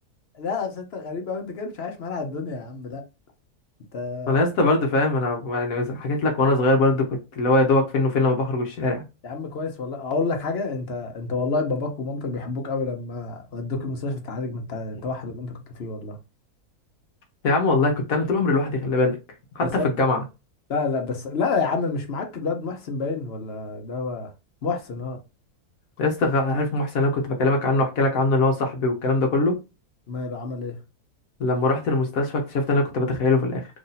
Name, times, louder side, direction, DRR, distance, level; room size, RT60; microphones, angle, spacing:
voice 1, 0.4-3.0 3.9-4.4 9.2-16.2 19.6-19.9 20.7-24.3 24.6-25.2 30.1-30.8, left 4 dB, 50° left, 0.8 m, -29 dB
voice 2, 4.3-9.0 17.4-19.2 19.5-20.2 26.0-29.6 31.4-33.7, left 2 dB, 65° left, 1.2 m, -22 dB
3.1 x 2.6 x 3.9 m
omnidirectional pair, 1.6 m